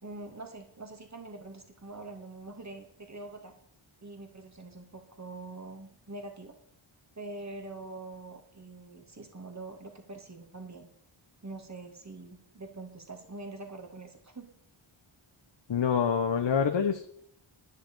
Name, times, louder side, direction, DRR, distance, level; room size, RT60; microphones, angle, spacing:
voice 1, 0.0-3.5 4.0-6.6 7.2-10.9 11.4-14.5, right 2 dB, 35° right, 3 dB, 2.6 m, -44 dB
voice 2, 15.7-17.1, left 7 dB, 60° left, 5 dB, 1.1 m, -26 dB
10.5 x 6.6 x 8.7 m, 0.68 s
wide cardioid pair, 75°, 50 cm